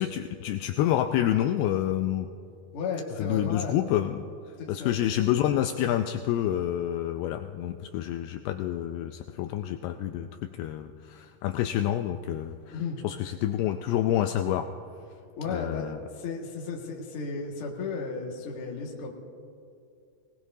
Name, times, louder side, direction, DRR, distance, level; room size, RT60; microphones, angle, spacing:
voice 1, 0.0-2.3 3.2-4.3 4.7-14.7 15.5-16.0, left 12 dB, 90° left, 6 dB, 2.3 m, -28 dB
voice 2, 2.7-3.7 4.6-5.0 12.7-13.0 15.4-19.1, left 4 dB, 50° left, -2 dB, 1.7 m, -34 dB
23.0 x 18.5 x 2.7 m, 2.5 s
omnidirectional pair, 5.1 m